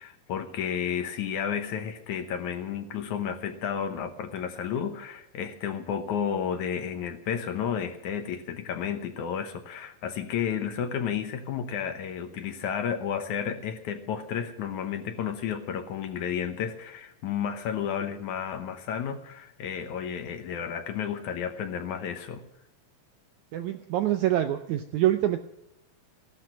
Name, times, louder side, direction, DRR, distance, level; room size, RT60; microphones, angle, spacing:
voice 1, 0.0-22.4, left 8 dB, 65° left, 8 dB, 2.2 m, -32 dB
voice 2, 23.5-25.4, right 13 dB, 80° right, 8 dB, 1.7 m, -25 dB
15.5 x 12.0 x 6.1 m, 0.86 s
omnidirectional pair, 4.1 m